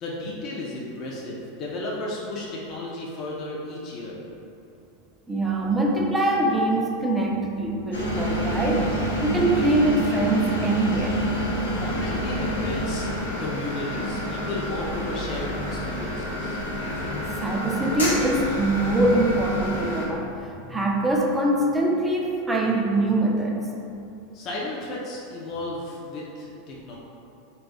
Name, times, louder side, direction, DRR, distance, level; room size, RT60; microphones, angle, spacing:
voice 1, 0.0-4.2 11.8-13.0 13.4-16.6 24.3-27.0, left 2 dB, 45° left, -4 dB, 0.5 m, -34 dB
voice 2, 5.3-8.9 9.2-11.2 17.4-20.3 20.6-23.6, right 2 dB, 10° right, -1 dB, 0.4 m, -23 dB
sound 1, 7.9-20.1, equal, 85° left, 0.6 m, -28 dB
2.4 x 2.3 x 3.9 m, 2.7 s
hypercardioid pair, 95°, 0 cm